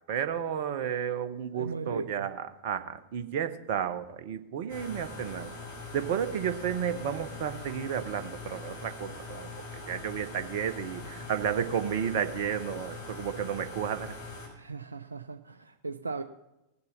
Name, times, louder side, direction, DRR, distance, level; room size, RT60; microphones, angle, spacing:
voice 1, 0.1-5.5 5.9-9.5 9.9-14.1, right 8 dB, 50° right, 10 dB, 1.0 m, -32 dB
voice 2, 1.5-2.3 14.5-16.2, right 3 dB, 80° right, 8 dB, 0.5 m, -37 dB
sound 1, 4.7-14.5, left 3 dB, 55° left, 6.2 m, -42 dB
19.0 x 6.8 x 5.5 m, 0.94 s
figure-of-eight pair, 90°, 0 cm